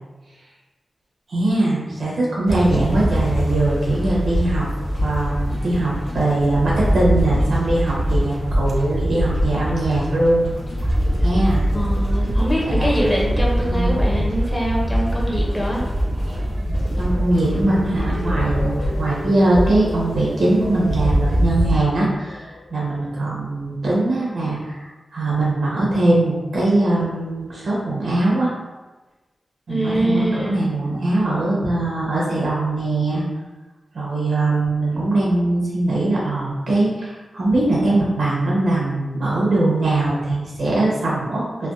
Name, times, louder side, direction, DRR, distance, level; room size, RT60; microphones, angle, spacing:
voice 1, 1.3-4.7 5.0-10.5 11.2-11.6 12.6-12.9 13.6-14.0 16.9-28.5 29.7-33.2 33.9-41.7, right 2 dB, 85° right, -5 dB, 1.0 m, -21 dB
sound 1, 2.5-21.8, equal, 60° right, 0.4 m, -23 dB
sound 2, 2.9-19.0, left 1 dB, 80° left, 0.9 m, -30 dB
voice 2, 11.7-15.8 29.7-30.6, equal, 15° left, -4 dB, 0.7 m, -23 dB
sound 3, 16.1-23.3 23.7-24.1, left 2 dB, 65° left, 0.4 m, -36 dB
3.3 x 2.1 x 2.6 m, 1.2 s
wide cardioid pair, 105°, 0 cm